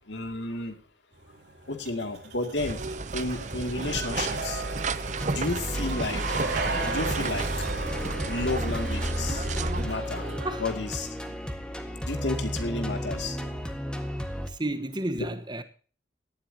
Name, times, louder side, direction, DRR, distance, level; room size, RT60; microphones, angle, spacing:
voice 1, 0.1-0.8 1.7-2.8 3.1-4.6 5.2-6.2 6.9-7.5 8.2-9.5 9.8-10.2 10.6-11.4 12.0-13.4, left 2 dB, 85° left, 2.6 m, -32 dB
sound 1, 1.2-10.5, right 3 dB, 80° right, 4.0 m, -36 dB
sound 2, 2.6-9.8, right 4 dB, 45° right, 0.7 m, -33 dB
sound 3, 5.2-14.5, equal, 5° left, 1.6 m, -33 dB
voice 2, 14.5-15.6, right 1 dB, 25° right, 1.2 m, -31 dB
18.0 x 13.0 x 2.9 m
head